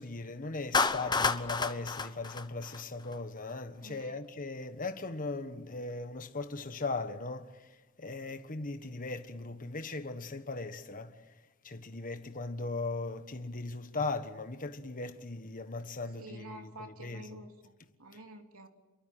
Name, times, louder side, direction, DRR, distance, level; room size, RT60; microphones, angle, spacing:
voice 1, 0.0-7.5 8.0-11.1 11.6-16.5 17.0-17.2, left 3 dB, 40° left, 1.4 m, -38 dB
Clapping, 0.7-3.1, left 4 dB, 20° left, 1.1 m, -30 dB
voice 2, 3.8-4.2 16.1-17.7 18.0-18.7, right 1 dB, 75° right, 3.2 m, -49 dB
28.0 x 23.0 x 7.7 m
head